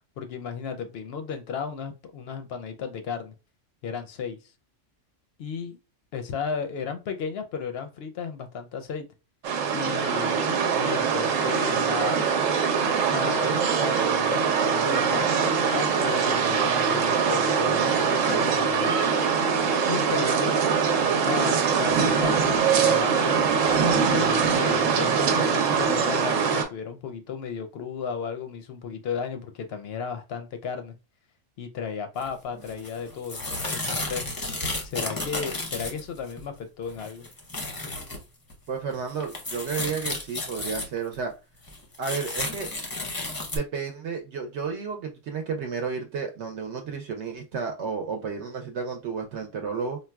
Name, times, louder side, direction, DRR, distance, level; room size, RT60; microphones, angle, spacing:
voice 1, 0.2-3.3 3.8-4.4 5.4-5.8 6.1-9.1 9.7-10.5 10.7-12.3 13.1-18.9 19.9-20.6 21.0-23.4 24.1-30.9 31.6-34.2 34.8-37.2, left 6 dB, 65° left, 0.7 m, -34 dB
sound 1, 9.4-26.7, right 6 dB, 90° right, 1.0 m, -23 dB
sound 2, 32.2-32.3 32.7-36.4 36.8-38.2 38.5-38.6 38.9-41.2 41.7-43.6, left 2 dB, 25° left, 0.5 m, -33 dB
voice 2, 38.7-41.3 42.0-42.7 43.5-50.0, right 5 dB, 70° right, 0.8 m, -32 dB
3.9 x 2.2 x 2.2 m
omnidirectional pair, 1.3 m